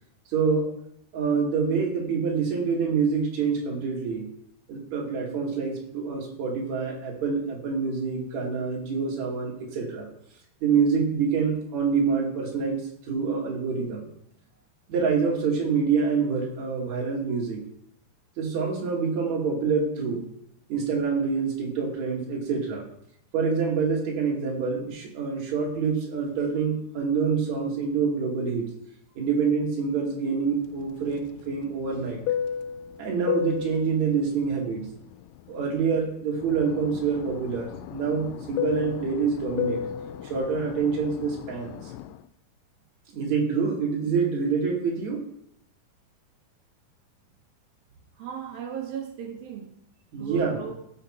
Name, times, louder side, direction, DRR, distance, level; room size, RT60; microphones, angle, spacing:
voice 1, 0.3-0.7 1.1-4.3 4.7-10.1 10.6-12.8 13.1-14.0 14.9-17.6 18.4-20.2 20.7-22.8 23.3-28.7 29.2-32.2 33.0-34.9 35.5-39.8 40.2-41.8 43.1-45.2 50.1-50.6, right 5 dB, 50° right, -2 dB, 3.2 m, -26 dB
Fixed-wing aircraft airplane, 30.7-36.0 36.4-42.2, left 9 dB, 80° left, 2.5 m, -34 dB
voice 2, 48.2-49.7 50.2-50.7, right 8 dB, 70° right, 3 dB, 3.0 m, -36 dB
14.5 x 6.4 x 4.4 m, 0.74 s
omnidirectional pair, 4.7 m